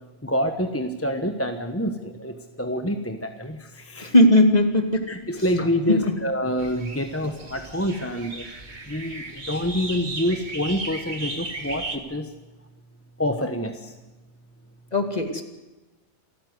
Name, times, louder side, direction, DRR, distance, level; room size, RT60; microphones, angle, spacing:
voice 1, 0.2-4.1 5.1-8.4 8.9-12.3 13.2-13.9, equal, 10° left, 6 dB, 1.2 m, -27 dB
voice 2, 4.0-5.0 5.9-6.0 14.9-15.4, left 1 dB, 35° left, 5 dB, 2.5 m, -18 dB
sound 1, 6.6-12.0, right 3 dB, 40° right, 1.9 m, -36 dB
27.5 x 14.5 x 8.0 m, 1.1 s
omnidirectional pair, 1.2 m